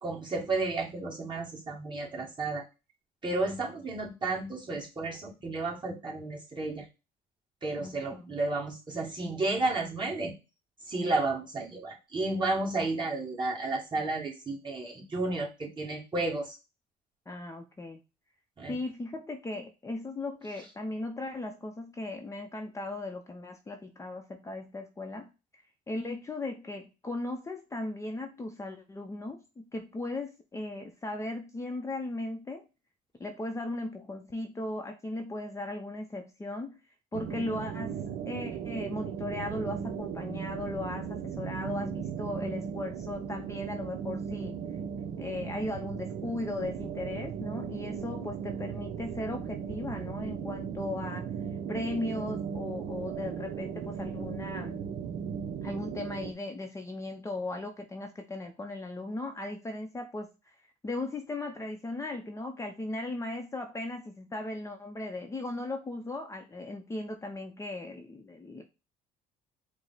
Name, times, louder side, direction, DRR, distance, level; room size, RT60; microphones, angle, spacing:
voice 1, 0.0-2.6 3.2-6.8 7.6-10.3 10.9-16.6 18.6-18.8, right 2 dB, 25° right, -3 dB, 1.9 m, -32 dB
voice 2, 7.8-8.4 17.3-18.0 18.7-32.7 33.2-36.8 37.1-38.0 38.3-44.6 45.2-51.3 51.7-54.8 55.6-60.6 60.8-68.6, left 2 dB, 15° left, 3 dB, 0.6 m, -37 dB
sound 1, 37.1-56.3, right 7 dB, 65° right, 0.6 m, -37 dB
5.0 x 2.1 x 3.9 m, 0.28 s
cardioid pair, 110°, 17 cm